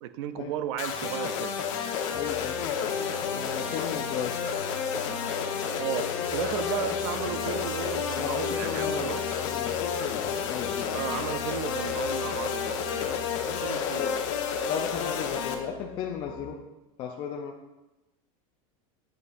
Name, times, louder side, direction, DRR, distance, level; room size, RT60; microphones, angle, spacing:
voice 1, 0.0-1.6 5.8-9.3 10.9-13.1 13.4-14.2, right 10 dB, 50° right, 11 dB, 0.5 m, -34 dB
sound 1, 0.8-15.5, left 7 dB, 60° left, 1.0 m, -31 dB
sound 2, 2.1-16.5, left 7 dB, 90° left, 1.2 m, -42 dB
voice 2, 2.1-2.6 3.3-4.3 8.2-9.1 9.4-9.7 10.2-10.9 13.9-14.1 14.6-16.6 17.0-17.5, left 8 dB, 25° left, 0 dB, 0.4 m, -35 dB
8.2 x 7.9 x 2.5 m, 1.0 s
supercardioid pair, 170°, 18 cm